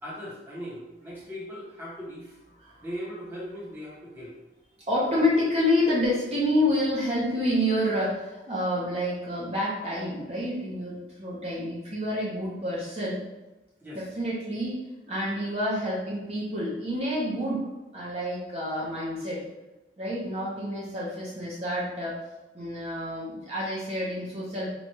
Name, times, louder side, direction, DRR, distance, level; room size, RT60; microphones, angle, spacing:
voice 1, 0.0-2.4 2.8-4.3 13.8-14.0, equal, 10° right, -7 dB, 0.9 m, -39 dB
voice 2, 4.9-13.2 13.9-17.7 17.9-19.4 20.0-22.2 22.5-24.7, left 1 dB, 35° right, -7 dB, 0.8 m, -28 dB
3.0 x 2.4 x 4.2 m, 1.0 s
head